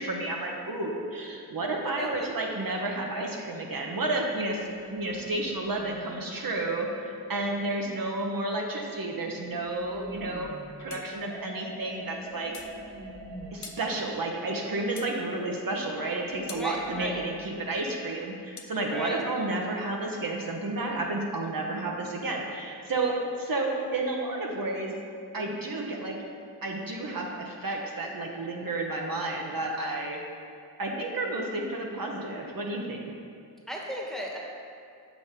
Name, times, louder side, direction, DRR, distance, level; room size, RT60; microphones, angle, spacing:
voice 1, 0.0-10.5 10.8-12.5 13.5-24.9 25.3-26.1 26.6-30.2 30.8-33.1, right 2 dB, 55° right, 0 dB, 0.9 m, -31 dB
voice 2, 2.0-2.3 16.5-17.2 18.9-19.2 33.7-34.4, equal, ahead, -3 dB, 1.2 m, -35 dB
sound 1, 3.0-7.8 8.9-14.4 14.7-14.8 15.3-18.1, right 1 dB, 15° right, 0.7 m, -48 dB
sound 2, 10.9-11.1 12.5-12.8 13.6-13.9 15.0-15.2 16.5-16.7 18.6-18.8, left 5 dB, 45° left, 0.6 m, -44 dB
sound 3, 11.3-18.2 18.6-19.1, right 3 dB, 85° right, 0.9 m, -49 dB
6.7 x 6.0 x 3.6 m, 2.4 s
cardioid pair, 65°, 41 cm